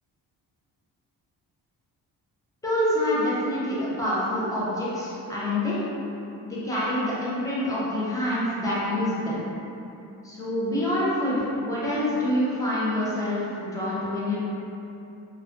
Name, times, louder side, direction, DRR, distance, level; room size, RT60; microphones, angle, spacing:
voice 1, 2.6-5.8 6.4-9.5 10.2-14.4, left 1 dB, 10° left, -9 dB, 0.5 m, -26 dB
2.4 x 2.2 x 2.3 m, 2.9 s
cardioid pair, 130°, 42 cm